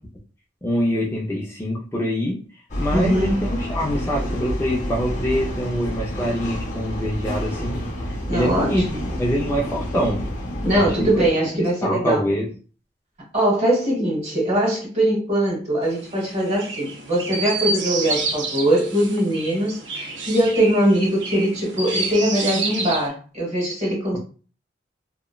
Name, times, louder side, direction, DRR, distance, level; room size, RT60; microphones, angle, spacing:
voice 1, 0.6-2.4 2.8-7.8 8.3-10.2 10.7-11.1 11.5-12.5, equal, 15° left, -4 dB, 0.4 m, -24 dB
sound 1, 2.7-11.3, equal, 40° left, 0.7 m, -29 dB
voice 2, 2.9-3.5 8.3-9.0 10.6-12.2 13.3-24.2, right 1 dB, 40° right, -3 dB, 1.3 m, -21 dB
Chirp tweet, 15.8-23.1, right 3 dB, 75° right, 0.5 m, -29 dB
2.8 x 2.1 x 2.2 m, 0.37 s
head